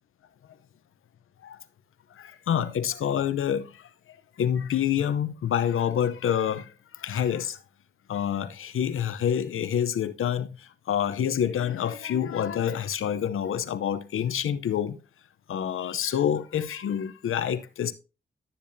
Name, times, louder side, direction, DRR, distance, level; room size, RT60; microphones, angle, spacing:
voice 1, 2.1-7.6 8.1-15.0 15.5-17.9, left 9 dB, 80° left, 0.7 m, -27 dB
12.5 x 6.9 x 2.7 m
cardioid pair, 50°, 21 cm